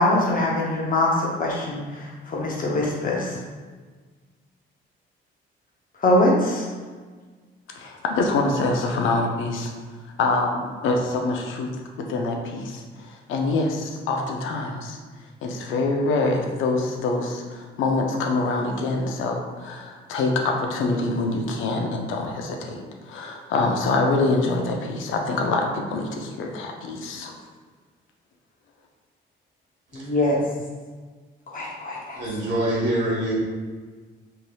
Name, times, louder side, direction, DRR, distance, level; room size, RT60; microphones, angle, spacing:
voice 1, 0.0-1.8 2.3-3.3 6.0-6.6 29.9-30.4 31.5-32.2, left 1 dB, 45° left, -2 dB, 0.7 m, -22 dB
voice 2, 7.7-9.7 10.2-11.7 12.0-15.0 15.4-27.3, left 3 dB, 80° left, 2 dB, 0.5 m, -25 dB
voice 3, 29.9-30.3 32.2-33.4, right 1 dB, 65° right, -5 dB, 1.2 m, -25 dB
3.2 x 2.7 x 2.2 m, 1.4 s
cardioid pair, 90°, 20 cm